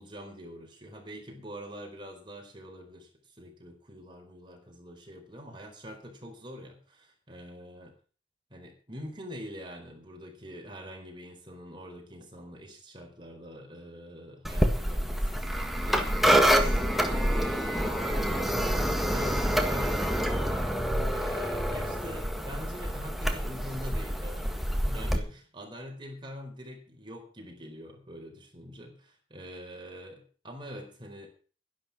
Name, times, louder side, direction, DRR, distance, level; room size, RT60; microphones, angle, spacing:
voice 1, 0.0-3.1 3.4-7.9 8.5-20.8 21.1-31.3, equal, 30° right, 2 dB, 4.6 m, -44 dB
sound 1, 14.4-25.2, equal, ahead, 1.6 m, -27 dB
12.0 x 11.5 x 6.1 m, 0.39 s
head